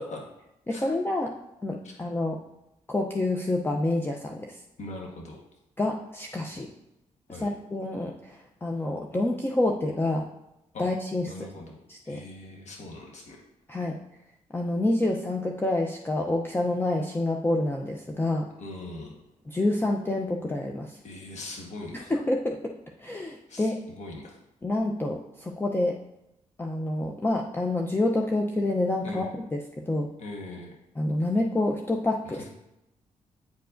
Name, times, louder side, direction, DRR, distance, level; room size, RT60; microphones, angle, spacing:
voice 1, 0.7-1.3 1.6-2.4 2.9-4.6 5.8-6.7 7.3-10.3 10.8-11.3 11.9-12.2 13.7-14.0 14.5-18.5 19.5-21.0 21.9-23.8 24.6-26.0 26.6-29.3 29.5-29.6 29.9-30.1 31.0-32.5, left 2 dB, 15° left, 0 dB, 0.6 m, -28 dB
voice 2, 4.8-5.4 7.3-7.5 10.7-10.9 11.2-11.8 12.0-13.4 18.6-19.2 21.0-22.1 23.5-24.4 29.0-29.3 30.2-30.7 32.2-32.5, left 2 dB, 65° left, 0 dB, 1.3 m, -41 dB
9.3 x 4.6 x 2.6 m, 0.89 s
cardioid pair, 70°, 13 cm